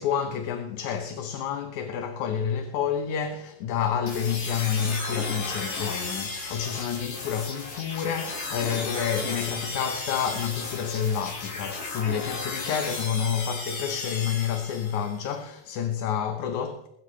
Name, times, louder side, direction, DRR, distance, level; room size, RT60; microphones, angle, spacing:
voice 1, 0.0-16.9, left 8 dB, 75° left, 2.4 m, -29 dB
sound 1, 4.1-15.2, left 3 dB, 35° left, 2.0 m, -34 dB
22.0 x 12.5 x 3.2 m
omnidirectional pair, 3.5 m